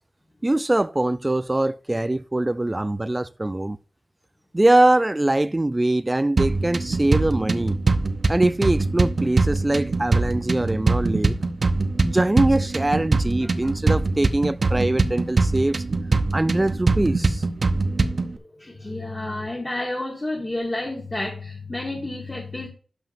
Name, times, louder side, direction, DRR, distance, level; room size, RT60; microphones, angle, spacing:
voice 1, 0.4-3.8 4.5-7.8 8.3-11.4 12.0-15.8 16.3-17.4, right 1 dB, 20° right, 0.3 m, -22 dB
sound 1, 6.4-18.4, right 3 dB, 45° right, 0.7 m, -23 dB
voice 2, 13.4-13.7 18.6-22.7, left 2 dB, 20° left, 1.7 m, -30 dB
12.0 x 7.3 x 2.6 m
wide cardioid pair, 110°, 0 cm